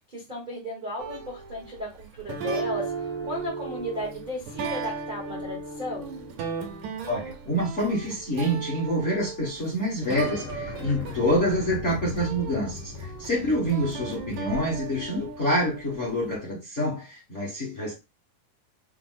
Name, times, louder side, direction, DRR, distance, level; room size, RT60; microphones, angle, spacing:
voice 1, 0.1-6.1, left 1 dB, 75° right, 0.4 m, -35 dB
sound 1, 1.0-16.4, right 5 dB, 90° right, 2.2 m, -36 dB
voice 2, 7.1-17.9, equal, 40° left, 1.0 m, -27 dB
sound 2, 10.1-15.4, left 5 dB, 65° left, 1.3 m, -40 dB
5.7 x 2.1 x 3.8 m
omnidirectional pair, 3.4 m